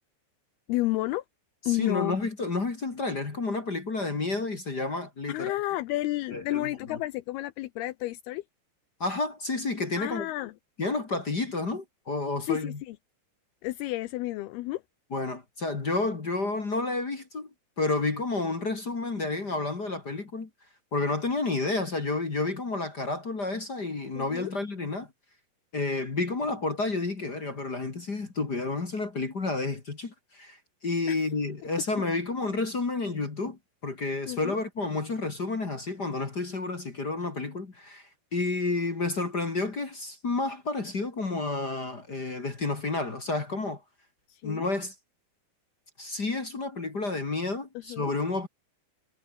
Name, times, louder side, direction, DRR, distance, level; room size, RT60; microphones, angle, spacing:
voice 1, 0.7-1.2 1.7-2.2 5.3-8.4 10.0-10.5 12.5-13.0 13.6-14.8 24.2-24.5 31.1-31.2 34.3-34.6 44.3-44.7 47.9-48.1, left 17 dB, 90° left, 2.2 m, -31 dB
voice 2, 1.7-5.5 6.3-7.0 9.0-10.3 10.8-12.8 15.1-17.5 17.8-20.5 20.9-25.1 25.7-43.8 44.4-44.9 46.0-48.5, left 3 dB, 30° left, 2.0 m, -30 dB
omnidirectional pair, 5.6 m